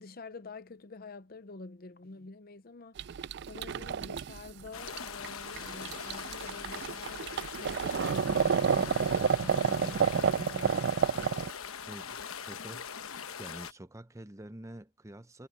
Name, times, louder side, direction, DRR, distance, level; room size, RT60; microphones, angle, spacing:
voice 1, 0.0-3.1 3.5-7.3 7.5-10.9, left 3 dB, 45° left, 0.7 m, -47 dB
sound 1, 3.0-11.5, right 6 dB, 50° right, 0.4 m, -30 dB
sound 2, 4.7-13.7, left 7 dB, 85° left, 1.1 m, -42 dB
voice 2, 11.9-12.9 13.3-15.5, right 1 dB, 15° right, 0.7 m, -47 dB
head